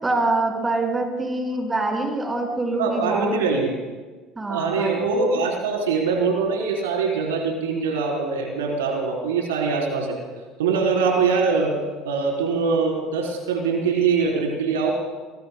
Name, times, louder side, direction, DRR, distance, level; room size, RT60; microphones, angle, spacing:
voice 1, 0.0-3.4 4.4-5.1, right 2 dB, 20° right, 1 dB, 5.3 m, -25 dB
voice 2, 2.8-3.7 4.5-10.2 10.6-11.7 12.0-14.9, right 5 dB, 85° right, 0 dB, 3.7 m, -23 dB
24.0 x 21.5 x 2.2 m, 1.3 s
hypercardioid pair, 70°, 0 cm